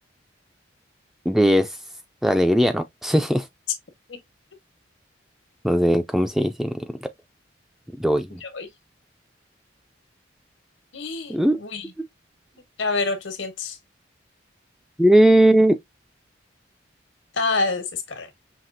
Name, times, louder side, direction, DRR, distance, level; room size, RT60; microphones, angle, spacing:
voice 1, 1.3-1.8 2.2-3.5 5.6-7.1 8.0-8.4 11.3-11.6 15.0-15.8, right 1 dB, ahead, 0.3 m, -19 dB
voice 2, 10.9-11.9 12.8-13.8 17.4-18.3, left 3 dB, 85° left, 1.2 m, -27 dB
5.8 x 2.8 x 2.6 m
head